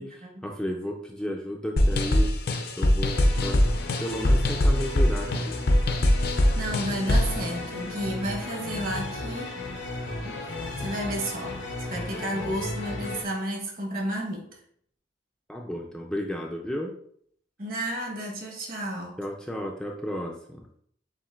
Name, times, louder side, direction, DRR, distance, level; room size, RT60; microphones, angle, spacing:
voice 1, 0.4-2.3 2.8-3.2 3.4-3.6 4.0-5.6 15.5-16.9 19.2-20.7, equal, 5° left, 0.4 m, -33 dB
sound 1, 1.8-7.4, left 1 dB, 55° left, 0.5 m, -22 dB
sound 2, 3.1-13.2, left 2 dB, 80° left, 0.9 m, -35 dB
voice 2, 6.5-9.6 10.2-10.5 10.8-11.6 11.9-14.5 17.6-19.2, right 1 dB, 50° right, 1.2 m, -32 dB
7.2 x 2.6 x 2.4 m
head